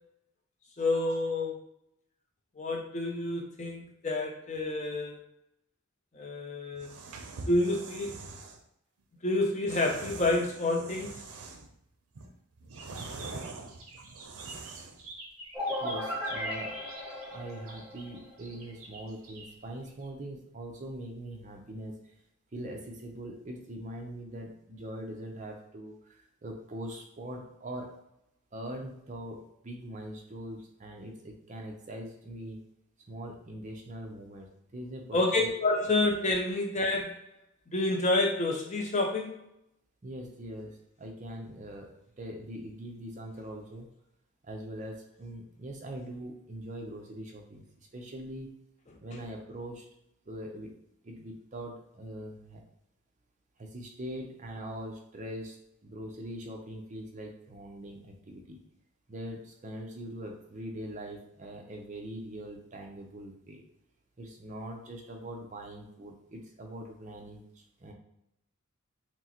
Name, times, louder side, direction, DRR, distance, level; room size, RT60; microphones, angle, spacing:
voice 1, 0.8-1.6 2.6-5.2 6.1-6.9 7.5-8.1 9.2-11.2 35.1-37.2 37.7-39.4, left 2 dB, 30° left, 1 dB, 0.5 m, -28 dB
sound 1, 6.7-8.6 9.7-11.7 12.1-15.0, right 3 dB, 90° right, 0.5 m, -44 dB
sound 2, 12.7-20.1, right 2 dB, 75° right, 1.0 m, -48 dB
sound 3, 15.5-18.3, left 1 dB, 5° right, 0.9 m, -36 dB
voice 2, 15.8-16.8 17.3-22.1 22.5-27.9 28.5-32.6 33.1-35.5 40.0-43.9 44.4-48.5 49.0-49.9 50.3-50.7 51.0-52.6 53.6-58.6 59.1-63.6 64.2-67.9, right 1 dB, 35° right, 1 dB, 0.6 m, -42 dB
6.0 x 2.1 x 2.9 m, 0.79 s
head